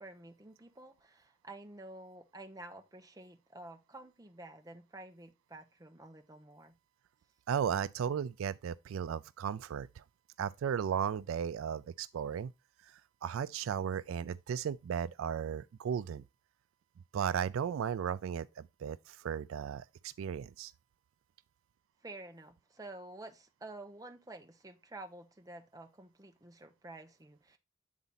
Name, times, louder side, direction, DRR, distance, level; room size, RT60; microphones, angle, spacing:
voice 1, 0.0-6.7 22.0-27.6, right 2 dB, 20° right, 0.9 m, -50 dB
voice 2, 7.5-10.0 10.4-12.5 12.8-16.2 17.1-20.7, right 8 dB, 75° right, 0.3 m, -35 dB
8.4 x 4.0 x 3.9 m
head